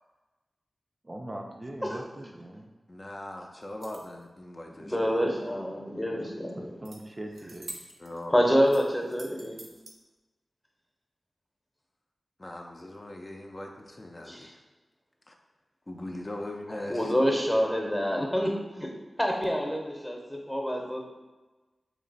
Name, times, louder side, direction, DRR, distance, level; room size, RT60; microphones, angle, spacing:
voice 1, 1.0-2.7 6.6-7.8, right 1 dB, 35° right, 1 dB, 0.4 m, -41 dB
voice 2, 2.9-5.3 8.0-8.6 12.4-14.5 15.3-15.4 15.9-17.1, left 1 dB, 35° left, 1 dB, 0.4 m, -40 dB
sound 1, 3.6-4.2 6.8-7.0 7.3-8.2 8.7-9.9, right 2 dB, 75° right, 0.7 m, -46 dB
voice 3, 4.7-6.7 8.3-9.6 14.2-14.5 16.7-18.9 19.2-21.0, equal, 10° left, 1 dB, 0.8 m, -27 dB
3.2 x 2.9 x 3.9 m, 1.2 s
cardioid pair, 50°, 0 cm